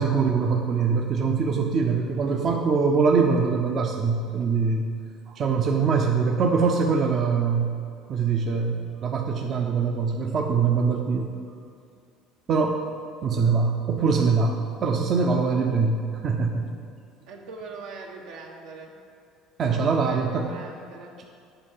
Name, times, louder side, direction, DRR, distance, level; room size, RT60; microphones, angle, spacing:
voice 1, 0.0-4.9 5.3-7.7 8.1-11.3 12.5-12.8 13.2-16.7 19.6-20.5 21.2-21.3, right 5 dB, 45° right, 2 dB, 0.7 m, -23 dB
voice 2, 17.3-18.9 19.7-21.1, right 4 dB, 80° right, 0 dB, 1.2 m, -41 dB
8.9 x 4.5 x 5.6 m, 2.4 s
supercardioid pair, 90°, 0 cm